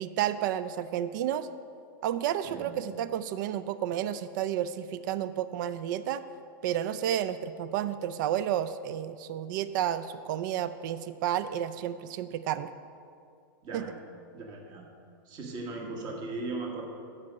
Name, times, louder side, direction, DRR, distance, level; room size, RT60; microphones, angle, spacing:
voice 1, 0.0-1.5 2.0-6.2 6.6-12.7 13.7-13.8, right 11 dB, 60° right, 13 dB, 0.4 m, -31 dB
voice 2, 14.3-14.8 15.2-16.9, right 3 dB, 35° right, 1 dB, 1.5 m, -37 dB
7.5 x 6.1 x 7.6 m, 2.4 s
hypercardioid pair, 135°, 12 cm